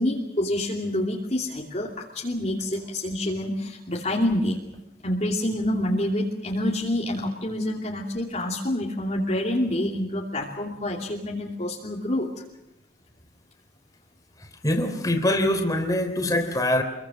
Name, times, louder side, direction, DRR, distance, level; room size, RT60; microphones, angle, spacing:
voice 1, 0.0-1.9 2.1-4.6 5.0-12.3, left 1 dB, 35° left, -2 dB, 2.8 m, -27 dB
voice 2, 14.6-16.8, left 1 dB, 20° left, 4 dB, 3.5 m, -23 dB
27.0 x 23.0 x 6.3 m, 0.91 s
head